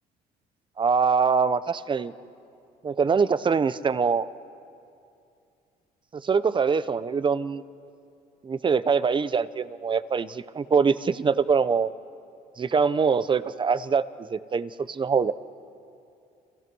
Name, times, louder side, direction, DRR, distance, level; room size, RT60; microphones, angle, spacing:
voice 1, 0.8-2.1 2.8-4.3 6.2-7.6 8.4-11.9 12.6-14.0 14.3-15.3, right 5 dB, 30° right, 15 dB, 0.8 m, -23 dB
30.0 x 27.5 x 6.2 m, 2.5 s
cardioid pair, 110°, 17 cm